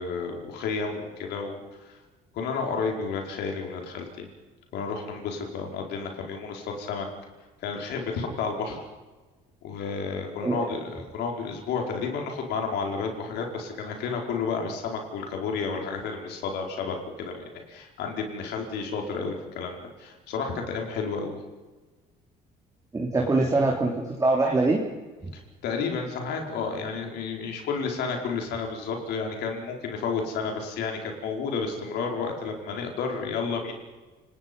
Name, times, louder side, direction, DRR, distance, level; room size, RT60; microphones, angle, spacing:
voice 1, 0.0-2.0 2.3-4.3 4.7-7.1 7.6-8.8 9.6-21.4 25.6-33.7, left 5 dB, 80° left, 2 dB, 5.1 m, -31 dB
voice 2, 10.4-10.7 22.9-24.8 25.2-25.3, right 2 dB, 20° right, -1 dB, 3.3 m, -23 dB
29.5 x 19.0 x 5.5 m, 1.3 s
cardioid pair, 110°, 17 cm